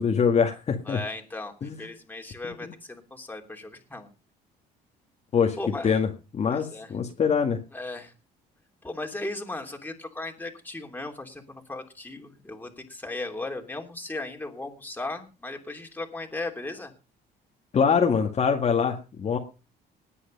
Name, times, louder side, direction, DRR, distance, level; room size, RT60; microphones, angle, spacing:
voice 1, 0.0-1.0 1.6-1.8 2.6-2.7 5.3-5.6 5.8-6.1 6.3-7.6 17.7-19.4, left 6 dB, 40° left, 2 dB, 2.0 m, -23 dB
voice 2, 0.8-4.1 5.6-6.0 6.5-6.9 7.7-8.1 8.8-16.9, left 2 dB, 10° left, 3 dB, 3.2 m, -37 dB
19.5 x 8.5 x 5.3 m, 0.33 s
cardioid pair, 110°, 17 cm